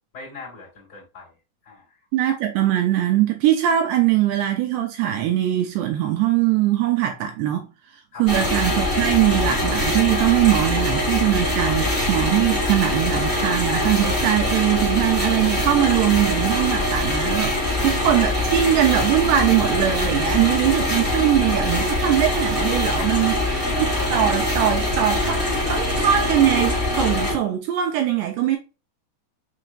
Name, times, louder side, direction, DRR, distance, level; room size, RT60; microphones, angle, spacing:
voice 1, 0.1-1.3 1.6-2.0 8.1-8.2 17.6-17.9 23.0-23.6, left 3 dB, 30° left, 2.3 m, -42 dB
voice 2, 2.1-7.7 8.2-28.6, right 12 dB, 85° right, 2.4 m, -21 dB
sound 1, 8.3-27.3, left 1 dB, 10° right, 0.9 m, -23 dB
6.8 x 3.2 x 2.4 m
omnidirectional pair, 5.4 m